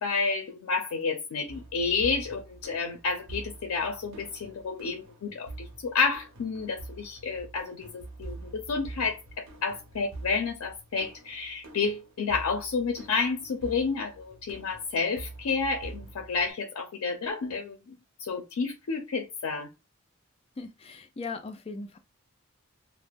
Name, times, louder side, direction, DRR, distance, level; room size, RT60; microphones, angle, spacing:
voice 1, 0.0-17.9 18.2-19.7, left 4 dB, 90° left, 0.4 m, -30 dB
sound 1, 1.5-16.5, right 2 dB, 85° right, 0.8 m, -45 dB
voice 2, 20.6-22.0, left 4 dB, 30° left, 0.3 m, -38 dB
2.2 x 2.0 x 3.3 m
head